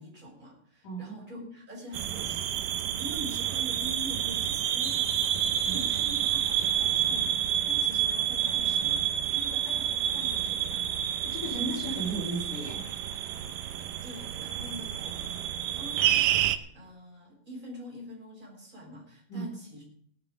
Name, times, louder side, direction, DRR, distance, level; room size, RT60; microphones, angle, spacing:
voice 1, 0.0-2.7 3.0-10.9 13.7-19.8, equal, 10° right, -3 dB, 5.9 m, -45 dB
voice 2, 0.8-1.5 5.6-5.8 11.2-12.9 19.3-19.5, right 2 dB, 60° left, -2 dB, 5.0 m, -35 dB
sound 1, 1.9-16.6, right 10 dB, 75° right, 2.3 m, -29 dB
17.0 x 12.0 x 5.2 m, 0.65 s
omnidirectional pair, 4.1 m